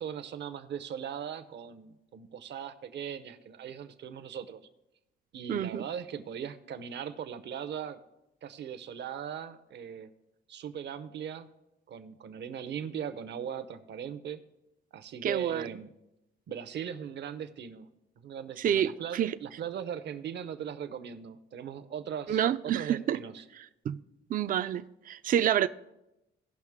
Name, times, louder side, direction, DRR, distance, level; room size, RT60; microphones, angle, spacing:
voice 1, 0.0-4.6 5.3-8.0 8.4-10.1 10.5-11.5 11.9-14.4 14.9-15.9 16.5-17.9 18.2-23.4, right 8 dB, 60° right, 0.7 m, -39 dB
voice 2, 5.5-5.8 15.2-15.7 18.6-19.4 22.3-23.2 23.9-24.0 24.3-25.7, right 10 dB, 45° right, 0.4 m, -28 dB
16.5 x 5.7 x 3.6 m
cardioid pair, 90°, 20 cm